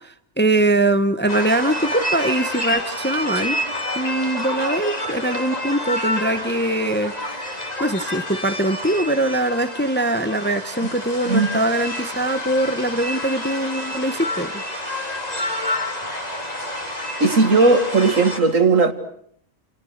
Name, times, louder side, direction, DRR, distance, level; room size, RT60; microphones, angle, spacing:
voice 1, 0.0-3.6 3.9-14.6, right 1 dB, 10° left, 1.0 m, -22 dB
sound 1, 1.3-18.4, left 1 dB, 30° left, 3.8 m, -28 dB
voice 2, 17.2-18.9, right 3 dB, 70° right, 2.4 m, -16 dB
29.5 x 28.0 x 6.6 m
omnidirectional pair, 1.4 m